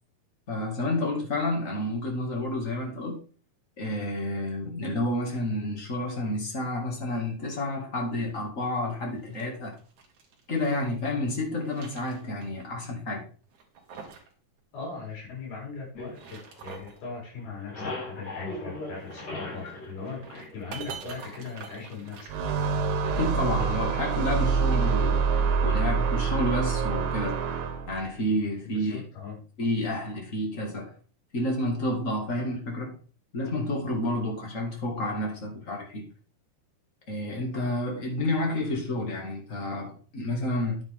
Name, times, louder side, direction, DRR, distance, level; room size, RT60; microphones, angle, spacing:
voice 1, 0.5-3.2 3.8-9.7 10.5-13.2 23.0-25.2 25.6-27.4 27.9-29.0 29.6-30.9 31.3-33.0 33.3-36.0 37.1-40.8, left 1 dB, 25° left, 1.9 m, -30 dB
sound 1, 9.1-10.9 11.4-12.6 12.9-13.0 13.5-14.3 14.6-14.7 15.9-17.0 18.9-23.0, right 6 dB, 55° right, 3.1 m, -45 dB
voice 2, 14.7-17.7 18.0-22.3 28.6-29.4, left 4 dB, 70° left, 6.7 m, -39 dB
sound 2, 15.9-17.1 17.4-21.1, left 2 dB, 45° left, 5.3 m, -39 dB
sound 3, 22.3-28.0, right 5 dB, 80° right, 3.4 m, -26 dB
9.9 x 8.1 x 3.7 m
omnidirectional pair, 4.6 m